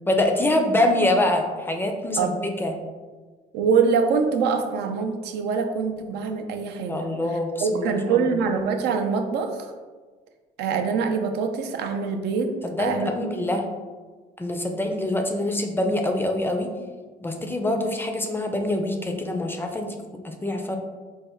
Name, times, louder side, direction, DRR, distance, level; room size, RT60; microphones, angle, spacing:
voice 1, 0.1-2.7 6.9-8.4 12.6-13.7 14.4-16.7 17.2-20.8, left 1 dB, 15° left, 4 dB, 0.4 m, -25 dB
voice 2, 3.5-7.0 7.6-9.7 10.6-13.1, right 5 dB, 80° right, 5 dB, 0.5 m, -24 dB
4.3 x 2.2 x 3.4 m, 1.4 s
cardioid pair, 110°, 17 cm